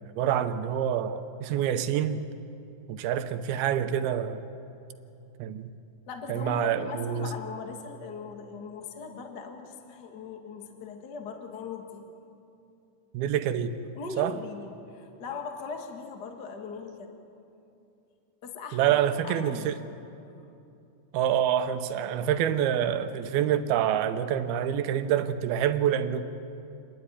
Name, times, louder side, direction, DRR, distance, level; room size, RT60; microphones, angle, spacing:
voice 1, 0.2-2.2 2.9-4.4 5.4-5.7 6.3-7.3 13.1-13.8 14.2-14.4 18.7-19.8 21.1-26.2, right 10 dB, 90° right, 10 dB, 2.8 m, -27 dB
voice 2, 6.1-12.0 13.9-17.1 18.4-19.7, left 5 dB, 40° left, 3 dB, 1.5 m, -39 dB
27.5 x 12.5 x 9.9 m, 2.7 s
omnidirectional pair, 4.3 m